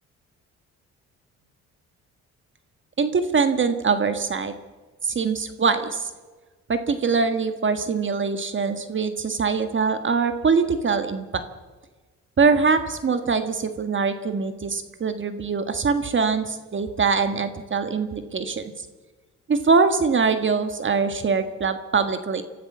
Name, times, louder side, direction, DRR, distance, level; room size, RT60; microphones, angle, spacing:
voice 1, 3.0-4.5 5.0-6.1 6.7-11.4 12.4-18.7 19.5-22.4, right 5 dB, 40° right, 9 dB, 1.6 m, -23 dB
25.0 x 14.5 x 7.3 m, 1.3 s
cardioid pair, 90°, 30 cm